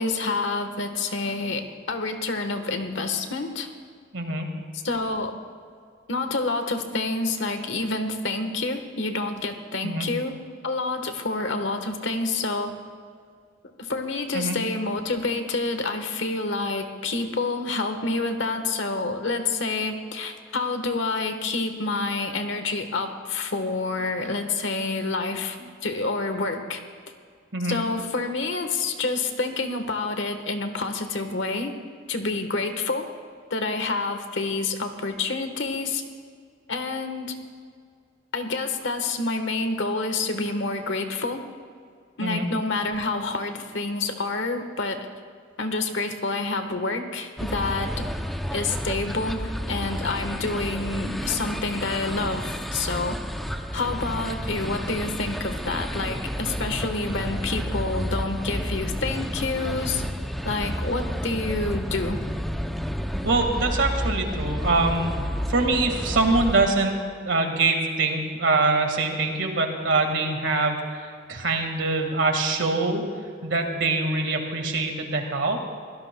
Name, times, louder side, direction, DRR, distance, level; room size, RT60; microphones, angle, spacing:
voice 1, 0.0-3.7 4.7-5.3 6.1-10.4 10.6-12.7 13.8-26.8 27.6-31.7 32.1-33.1 33.5-36.0 36.7-37.4 38.3-41.4 42.2-45.1 45.6-48.1 48.5-53.2 53.7-60.0 60.4-62.2, left 3 dB, 70° left, 7 dB, 1.3 m, -28 dB
voice 2, 4.1-4.5 9.8-10.1 14.3-14.6 27.5-27.8 42.2-42.5 63.2-65.1 65.5-66.9 67.3-73.0 73.4-75.6, right 3 dB, 70° right, 4 dB, 1.8 m, -24 dB
sound 1, 47.4-66.7, equal, ahead, 0.5 m, -31 dB
23.5 x 17.0 x 2.2 m, 2.2 s
head